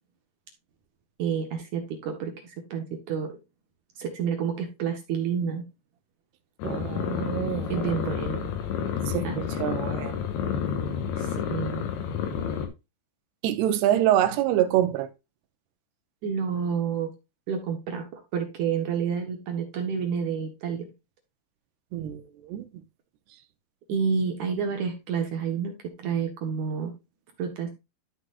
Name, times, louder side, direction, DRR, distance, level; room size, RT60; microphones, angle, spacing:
voice 1, 1.2-3.3 4.0-5.6 7.7-8.5 9.2-9.3 11.2-11.8 16.2-17.1 17.5-20.9 23.9-26.9 27.4-27.7, right 6 dB, 60° right, 2.3 m, -29 dB
sound 1, 6.6-12.7, left 7 dB, 85° left, 3.3 m, -30 dB
voice 2, 6.6-7.9 9.1-10.2 13.4-15.1 21.9-22.7, right 12 dB, 90° right, 3.0 m, -26 dB
12.0 x 6.1 x 2.5 m
omnidirectional pair, 4.6 m